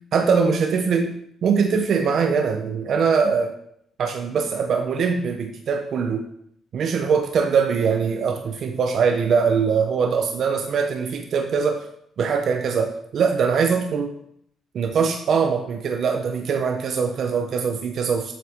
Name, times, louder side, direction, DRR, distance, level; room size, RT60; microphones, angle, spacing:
voice 1, 0.1-1.1 1.4-3.6 4.0-6.3 6.7-11.9 12.2-14.1 14.7-18.3, right 5 dB, 65° right, 5 dB, 0.6 m, -22 dB
7.3 x 5.7 x 3.5 m, 0.71 s
cardioid pair, 90°, 0 cm